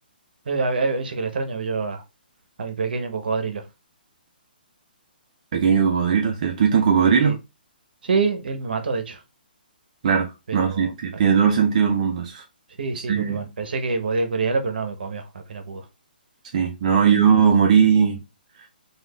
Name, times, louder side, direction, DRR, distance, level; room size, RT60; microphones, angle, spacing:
voice 1, 0.5-2.0 2.6-3.6 7.2-7.3 8.0-9.2 10.5-10.9 12.8-15.2 15.5-15.8 16.9-17.0, right 4 dB, 70° right, 0.8 m, -26 dB
voice 2, 5.5-7.4 10.0-12.4 12.9-13.5 16.5-18.2, right 7 dB, 45° right, 0.5 m, -19 dB
3.3 x 2.4 x 2.3 m
hypercardioid pair, 155°, 5 cm